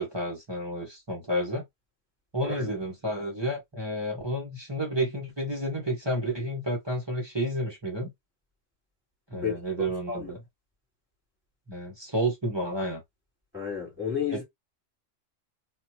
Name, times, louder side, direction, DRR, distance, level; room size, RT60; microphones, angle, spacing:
voice 1, 0.0-1.6 2.3-8.1 9.3-10.4 11.7-13.0 14.3-14.4, right 1 dB, 20° right, 1.4 m, -30 dB
voice 2, 10.1-10.4 13.5-14.4, left 7 dB, ahead, 3.1 m, -31 dB
4.1 x 2.8 x 2.9 m
omnidirectional pair, 1.3 m